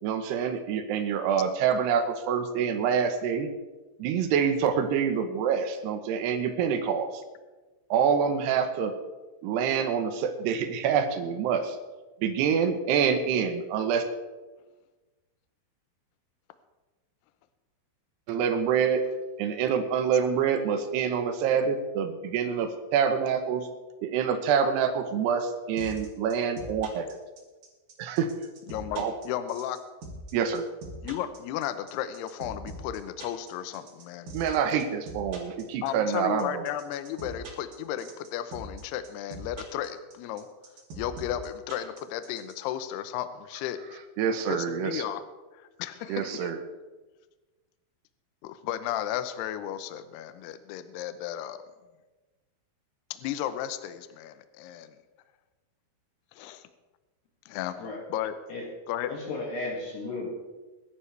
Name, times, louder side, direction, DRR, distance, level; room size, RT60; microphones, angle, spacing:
voice 1, 0.0-3.5 4.0-7.1 7.9-8.9 9.4-11.8 12.2-14.0 18.3-19.0 19.4-23.7 24.0-27.1 28.0-28.3 29.0-29.1 30.3-30.6 34.3-36.6 44.2-45.0 46.1-46.6, right 7 dB, 75° right, 7 dB, 2.7 m, -26 dB
sound 1, 25.8-42.5, right 2 dB, 50° right, 3.7 m, -42 dB
voice 2, 28.7-29.8 31.0-34.3 35.8-40.5 40.9-44.0 44.5-45.2 45.5-46.5 48.4-51.6 53.1-54.9 56.4-56.6 57.5-58.3 58.9-59.1, left 11 dB, 90° left, 10 dB, 2.3 m, -34 dB
voice 3, 59.1-60.3, left 2 dB, 60° left, -3 dB, 3.9 m, -34 dB
22.5 x 11.5 x 3.4 m, 1.2 s
omnidirectional pair, 5.8 m